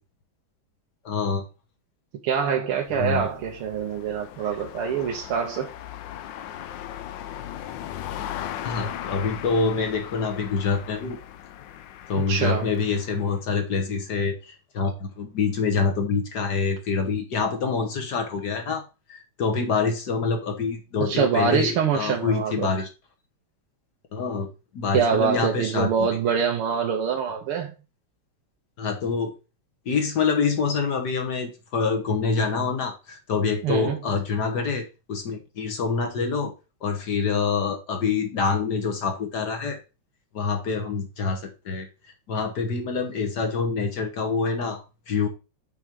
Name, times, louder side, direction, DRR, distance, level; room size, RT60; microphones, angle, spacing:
voice 1, 1.1-1.4 2.9-3.3 8.6-11.2 12.1-18.8 19.1-22.9 24.1-24.5 24.7-25.9 28.8-29.3 29.9-36.5 36.8-39.8 40.3-41.9 42.3-45.3, left 5 dB, 55° left, 4 dB, 1.6 m, -26 dB
voice 2, 2.2-5.7 12.1-12.7 21.0-22.7 24.9-27.7 33.6-34.0, right 7 dB, 85° right, 1 dB, 1.8 m, -25 dB
sound 1, 2.7-13.3, left 11 dB, 70° left, 1.2 m, -38 dB
6.1 x 4.6 x 5.1 m, 0.30 s
omnidirectional pair, 2.4 m